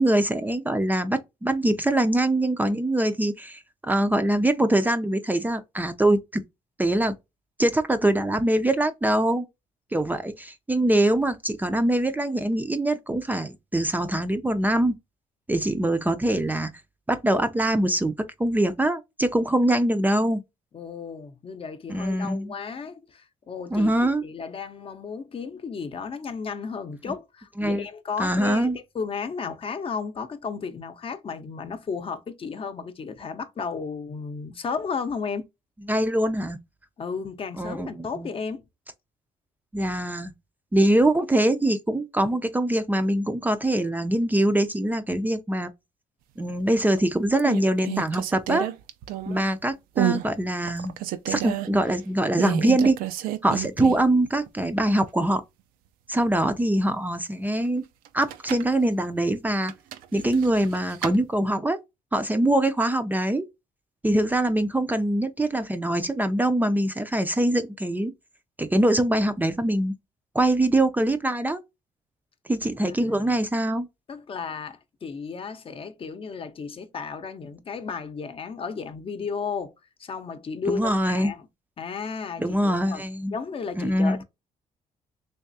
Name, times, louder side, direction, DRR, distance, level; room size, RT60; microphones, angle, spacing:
voice 1, 0.0-6.4 6.8-7.1 7.6-9.5 9.9-14.9 15.5-16.7 17.1-18.1 18.4-20.4 21.9-22.5 23.7-24.2 27.6-27.8 28.2-28.8 35.9-36.6 37.6-38.3 39.7-40.3 40.7-45.7 46.4-48.7 49.3-50.9 51.3-53.0 53.4-55.4 56.1-57.8 58.1-59.7 60.1-61.8 62.1-63.4 64.0-68.1 68.6-69.9 70.3-71.6 72.5-73.9 80.7-81.3 82.4-83.3 83.8-84.2, right 1 dB, 10° right, 0.4 m, -23 dB
voice 2, 20.7-35.5 37.0-38.6 72.8-73.4 74.1-79.7 80.0-81.4 81.8-83.0 83.3-84.2, left 5 dB, 40° left, 0.7 m, -34 dB
sound 1, 46.6-47.0 47.4-49.5 49.9-50.3 50.7-51.7 52.4-54.1 54.5-54.6 58.0-58.7 59.6-61.2, right 14 dB, 90° right, 0.4 m, -30 dB
3.5 x 3.1 x 2.6 m
cardioid pair, 95°, 14 cm